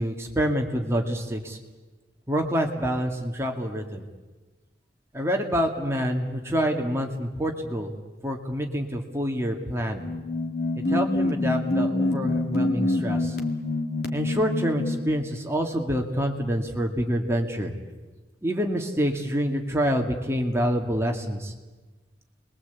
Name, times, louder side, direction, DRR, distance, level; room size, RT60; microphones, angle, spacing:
voice 1, 0.0-1.6 2.3-4.0 5.1-7.9 8.2-10.0 10.9-13.4 14.1-17.7 18.4-21.5, equal, 15° right, 2 dB, 2.2 m, -27 dB
sound 1, 10.0-15.1, left 2 dB, 60° left, 2.5 m, -26 dB
29.5 x 22.0 x 8.4 m, 1.2 s
head